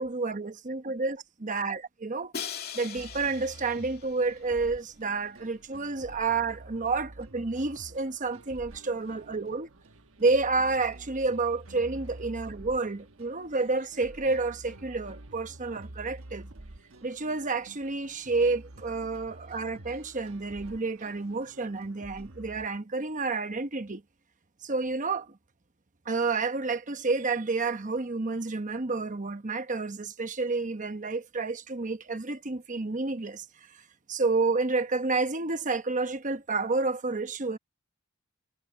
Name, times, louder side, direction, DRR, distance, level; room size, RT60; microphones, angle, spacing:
voice 1, 0.0-2.3 2.8-9.7 10.2-16.5 17.0-24.0 24.6-25.3 26.1-33.4 34.1-37.6, right 3 dB, 35° right, 1.0 m, -30 dB
Crash cymbal, 2.3-4.3, left 7 dB, 50° left, 2.7 m, -40 dB
sound 1, 2.9-22.7, right 2 dB, 65° right, 1.2 m, -49 dB
head